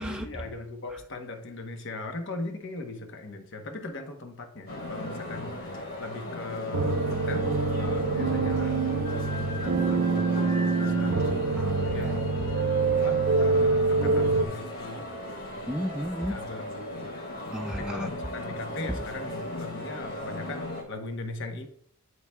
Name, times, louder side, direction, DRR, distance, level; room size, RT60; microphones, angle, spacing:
voice 1, 0.0-7.5 7.7-11.4 11.9-12.2 12.9-15.1 16.3-17.2 17.8-21.7, left 2 dB, 60° left, 5 dB, 1.0 m, -39 dB
sound 1, 4.7-20.8, left 1 dB, 75° left, 2.9 m, -37 dB
sound 2, 6.7-14.4, right 4 dB, 75° right, 0.6 m, -25 dB
voice 2, 11.5-12.2 15.7-16.4 17.5-18.1, equal, 5° right, 0 dB, 0.4 m, -33 dB
11.0 x 4.7 x 2.3 m, 0.63 s
head